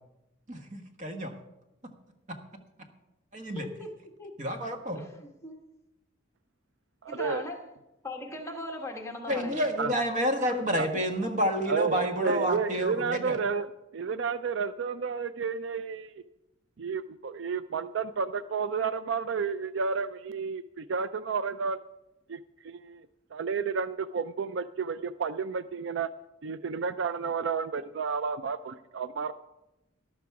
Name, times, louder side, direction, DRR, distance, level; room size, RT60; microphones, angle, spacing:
voice 1, 0.5-1.3 3.3-3.7 4.4-5.0 9.3-13.4, equal, 35° right, 5 dB, 1.4 m, -29 dB
voice 2, 3.5-4.3 4.9-5.6 7.1-7.6 8.0-9.7, left 2 dB, 15° left, 2 dB, 1.4 m, -39 dB
voice 3, 7.0-7.4 9.8-9.9 10.8-10.9 11.7-13.7 13.9-16.2 16.8-21.8 22.3-22.4 22.6-23.1 23.3-26.1 26.4-29.3, right 5 dB, 60° right, 14 dB, 0.4 m, -31 dB
13.0 x 11.5 x 4.8 m, 0.93 s
head